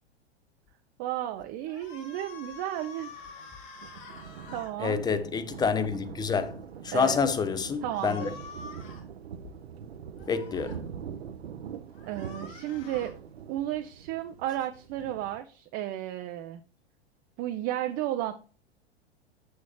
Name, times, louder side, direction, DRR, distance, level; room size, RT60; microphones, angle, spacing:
voice 1, 1.0-3.1 4.5-5.1 6.9-7.2 7.8-8.3 12.1-13.1 13.5-16.6 17.4-18.3, right 13 dB, 35° right, 0.5 m, -33 dB
sound 1, 1.7-4.7 7.8-9.0 10.2-10.8 11.9-13.1, left 5 dB, 50° left, 2.7 m, -47 dB
Thunder, 3.1-15.4, right 8 dB, 70° right, 0.7 m, -44 dB
voice 2, 4.8-6.6 6.8-8.3 10.3-10.8, left 5 dB, 15° left, 0.6 m, -28 dB
7.0 x 6.4 x 3.0 m
figure-of-eight pair, 95°, 32 cm